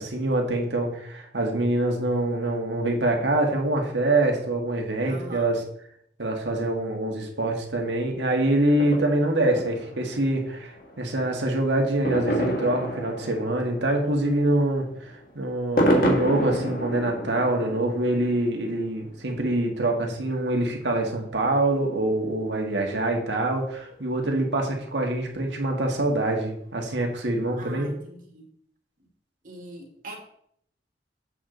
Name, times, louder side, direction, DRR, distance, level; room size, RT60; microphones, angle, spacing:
voice 1, 0.0-5.6 6.2-14.9 15.4-27.9, right 1 dB, 85° right, 2 dB, 1.7 m, -25 dB
voice 2, 5.0-5.5 27.6-28.5 29.0-29.1 29.4-30.2, right 1 dB, 45° right, 2 dB, 1.8 m, -42 dB
sound 1, 8.7-21.4 21.9-22.0 22.2-22.3 22.4-22.5 22.9-23.0 23.9-24.0 24.5-24.6 25.8-26.3 26.5-26.6 27.0-27.1 27.5-27.6, equal, 50° left, 1.6 m, -30 dB
7.7 x 6.6 x 3.9 m, 0.68 s
head